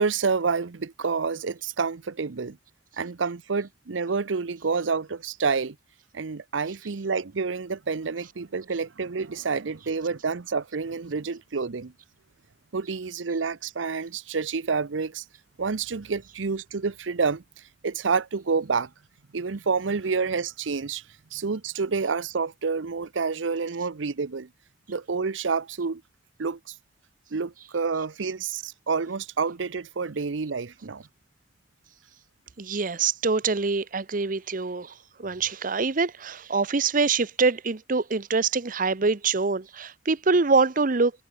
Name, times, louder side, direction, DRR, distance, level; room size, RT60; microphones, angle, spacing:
voice 1, 0.0-2.6 3.0-5.8 6.1-11.9 12.7-15.2 15.6-17.4 17.8-18.9 19.3-21.0 21.3-24.5 24.9-26.0 26.4-26.6 27.3-31.0, right 5 dB, 90° right, 0.7 m, -28 dB
voice 2, 32.6-34.9 35.2-41.1, right 4 dB, 45° right, 0.8 m, -24 dB
head